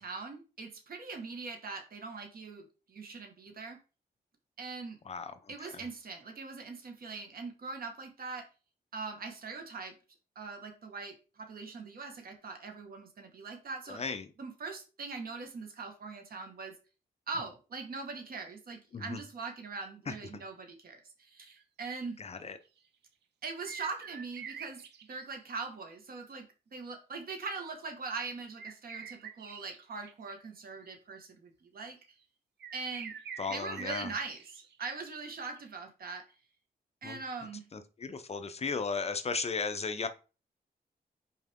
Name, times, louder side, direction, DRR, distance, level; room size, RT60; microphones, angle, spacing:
voice 1, 0.0-3.8 4.6-5.0 5.5-8.4 8.9-9.9 10.3-14.0 14.4-16.7 17.3-22.2 23.4-26.5 26.7-32.0 32.7-33.1 33.5-36.2 37.0-37.7, right 4 dB, 60° right, 1.6 m, -41 dB
voice 2, 13.9-14.3 18.9-19.2 20.1-20.2 22.2-22.6 33.4-34.1 37.0-37.2 37.7-40.1, left 5 dB, 40° left, 0.6 m, -35 dB
sound 1, 21.4-21.6 22.7-22.8 23.5-25.3 28.6-30.4 32.6-35.2 35.6-35.7, right 7 dB, 90° right, 0.7 m, -46 dB
5.9 x 4.6 x 3.6 m
wide cardioid pair, 115°, 17 cm